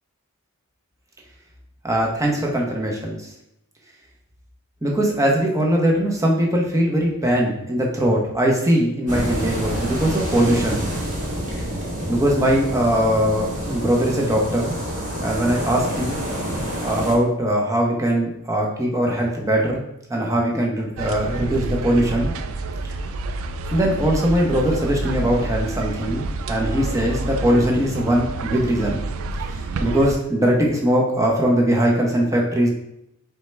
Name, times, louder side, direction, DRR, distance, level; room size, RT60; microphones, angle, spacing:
voice 1, 1.8-3.2 4.8-10.9 12.1-14.7 15.2-16.2 16.8-19.8 20.1-22.3 23.7-29.0 29.8-32.7, right 1 dB, 15° right, -1 dB, 0.8 m, -20 dB
sound 1, 9.1-17.1, right 1 dB, 35° right, 1.2 m, -28 dB
sound 2, 21.0-30.2, right 3 dB, 65° right, 0.3 m, -28 dB
4.6 x 3.3 x 3.2 m, 0.80 s
head